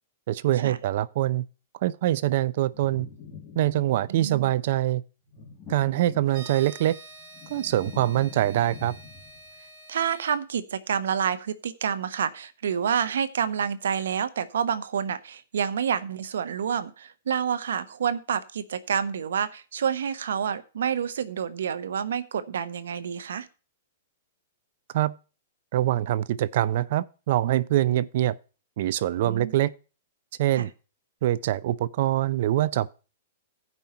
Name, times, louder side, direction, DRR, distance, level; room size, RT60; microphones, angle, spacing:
voice 1, 0.3-1.4 1.8-3.1 3.6-5.0 5.7-7.0 7.5-8.9 24.9-25.1 25.7-28.4 28.8-29.7 30.4-30.7 31.2-32.9, right 13 dB, 55° right, 0.5 m, -24 dB
sound 1, 2.7-4.3 5.2-6.7 7.1-9.5, left 5 dB, 20° left, 2.4 m, -45 dB
voice 2, 4.1-4.5 9.9-23.5 29.2-29.5 30.6-30.7, right 7 dB, 80° right, 1.0 m, -28 dB
sound 2, 6.3-10.4, right 2 dB, 25° right, 4.1 m, -47 dB
15.5 x 5.4 x 4.4 m
hypercardioid pair, 145°, 0 cm